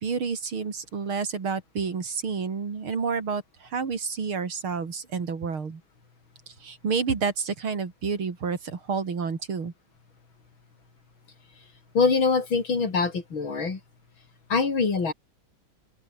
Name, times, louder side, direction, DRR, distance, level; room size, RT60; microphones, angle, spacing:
voice 1, 0.0-5.8 6.5-9.7, right 5 dB, 80° right, 3.9 m, -29 dB
voice 2, 11.9-13.8 14.5-15.1, left 4 dB, 70° left, 4.3 m, -24 dB
omnidirectional pair, 2.3 m